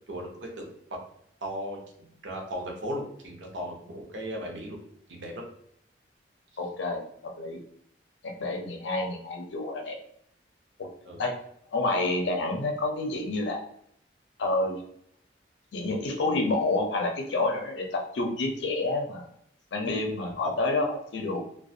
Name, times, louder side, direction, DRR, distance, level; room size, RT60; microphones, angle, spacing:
voice 1, 0.1-1.0 1.4-4.8 5.1-5.4 11.0-11.2 20.2-20.6, equal, 85° right, 1 dB, 0.7 m, -37 dB
voice 2, 6.6-7.6 8.2-10.0 10.8-10.9 11.2-11.3 11.7-13.6 14.4-14.8 15.7-19.3 19.7-21.4, left 2 dB, 75° left, 2 dB, 0.5 m, -29 dB
2.4 x 2.2 x 2.6 m, 0.69 s
head